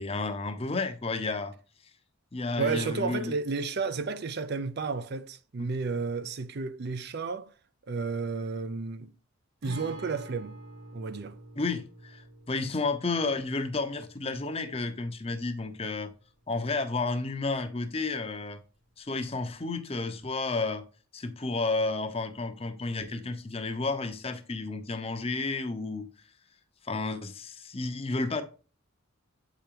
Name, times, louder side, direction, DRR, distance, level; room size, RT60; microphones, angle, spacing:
voice 1, 0.0-1.5 2.3-3.3 5.6-5.7 11.6-16.1 16.5-18.6 19.0-20.8 21.1-26.1 26.8-28.4, left 3 dB, 25° left, 0.7 m, -31 dB
voice 2, 2.6-7.5 7.9-9.1 9.6-10.6 10.9-11.4, right 4 dB, 50° right, 0.5 m, -32 dB
Guitar, 9.6-17.2 17.5-17.6 19.6-19.7, right 1 dB, 70° right, 3.3 m, -48 dB
7.8 x 5.0 x 2.9 m
head